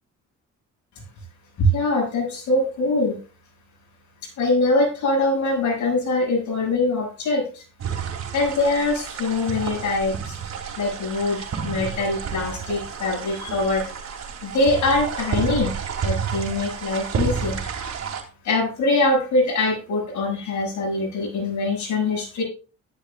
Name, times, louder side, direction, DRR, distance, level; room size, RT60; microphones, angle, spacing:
voice 1, 1.6-3.2 4.4-7.6 8.3-10.3 10.8-13.9 14.4-15.7 16.0-17.6 18.4-22.4, left 2 dB, 75° left, 0 dB, 7.2 m, -23 dB
sound 1, 7.8-18.2, right 7 dB, 60° right, 3.1 m, -30 dB
13.0 x 12.0 x 2.5 m, 0.34 s
cardioid pair, 90°, 30 cm